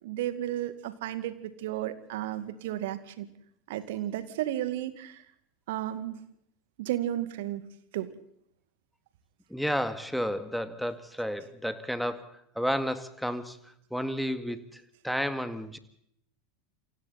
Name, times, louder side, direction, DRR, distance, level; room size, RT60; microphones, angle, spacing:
voice 1, 0.0-3.3 3.7-5.2 5.7-6.2 6.8-7.6 7.9-8.1, right 13 dB, 60° right, 12 dB, 2.1 m, -33 dB
voice 2, 9.5-15.8, equal, ahead, 11 dB, 2.1 m, -32 dB
28.5 x 25.5 x 4.2 m, 0.70 s
figure-of-eight pair, 80°, 0 cm